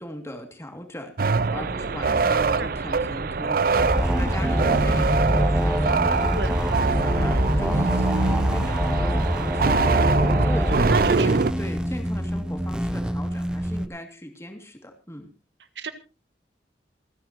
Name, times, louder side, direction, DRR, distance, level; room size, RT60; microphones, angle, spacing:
voice 1, 0.0-6.3 6.6-15.3, left 1 dB, 15° left, 5 dB, 2.5 m, -39 dB
sound 1, 1.2-11.5, right 4 dB, 55° right, 0.6 m, -24 dB
sound 2, 3.8-13.9, equal, 5° right, 0.7 m, -24 dB
voice 2, 4.2-4.5 6.3-6.5 10.7-11.3 15.8-15.9, right 3 dB, 85° right, 10 dB, 1.6 m, -32 dB
27.0 x 9.8 x 3.0 m, 0.32 s
head